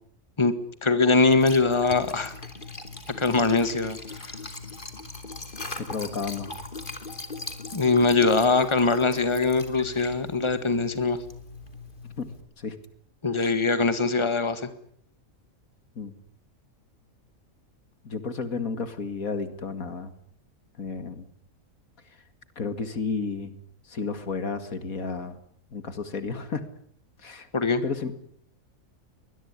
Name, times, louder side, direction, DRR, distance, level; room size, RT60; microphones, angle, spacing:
voice 1, 0.8-2.3 3.2-4.0 4.3-4.4 7.7-11.2 13.2-14.7 27.5-27.8, left 3 dB, 20° left, 12 dB, 1.9 m, -22 dB
Liquid, 1.2-12.4, left 3 dB, 35° left, 3.2 m, -40 dB
voice 2, 5.8-6.6 12.2-12.3 12.6-12.8 13.4-13.5 16.0-16.2 18.0-20.1 20.8-21.3 22.6-23.6 23.9-25.4 25.7-26.6 27.2-27.5 27.8-28.1, left 4 dB, 80° left, 11 dB, 2.6 m, -32 dB
23.0 x 21.0 x 9.9 m, 0.63 s
omnidirectional pair, 1.4 m